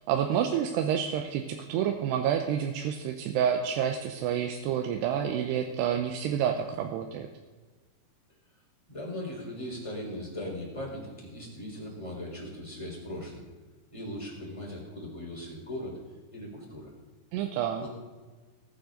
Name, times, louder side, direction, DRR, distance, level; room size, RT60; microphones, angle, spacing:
voice 1, 0.1-7.3 17.3-17.9, right 9 dB, 90° right, 4 dB, 2.9 m, -29 dB
voice 2, 8.9-13.4 13.9-16.0 16.3-16.9 17.8-17.9, left 1 dB, 5° left, -4 dB, 4.0 m, -39 dB
19.0 x 10.0 x 3.9 m, 1.3 s
omnidirectional pair, 4.7 m